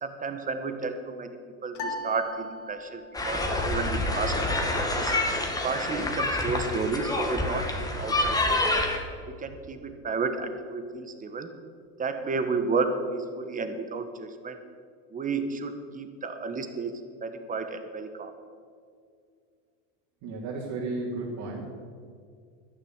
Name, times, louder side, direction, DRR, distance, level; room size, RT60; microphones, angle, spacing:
voice 1, 0.0-5.1 5.6-8.7 9.4-11.5 12.0-14.6 15.1-18.3, right 4 dB, 25° right, 8 dB, 1.5 m, -32 dB
sound 1, 1.7-3.2, left 1 dB, 60° left, 2.2 m, -37 dB
sound 2, 3.1-9.0, left 2 dB, 10° left, 1.9 m, -27 dB
voice 2, 20.2-21.7, right 3 dB, 60° right, -5 dB, 3.3 m, -33 dB
12.5 x 10.5 x 8.1 m, 2.2 s
supercardioid pair, 120°, 34 cm